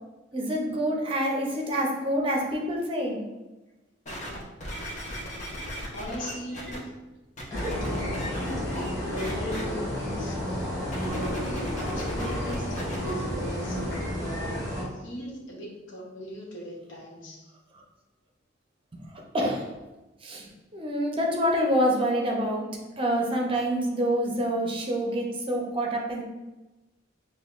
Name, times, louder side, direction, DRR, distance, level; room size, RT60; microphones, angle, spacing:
voice 1, 0.3-3.2 19.3-19.7 20.2-22.7 23.0-26.2, equal, 30° right, -1 dB, 0.6 m, -27 dB
sound 1, 4.1-6.8 7.4-8.9 9.2-9.6 10.8-13.1 13.8-13.9, equal, 40° left, 0.7 m, -37 dB
voice 2, 5.9-6.8 7.5-8.3 9.0-10.4 11.0-17.4, equal, 80° left, -4 dB, 1.0 m, -38 dB
sound 2, 7.5-14.8, equal, 20° left, 1.2 m, -31 dB
5.4 x 2.2 x 2.4 m, 1.1 s
head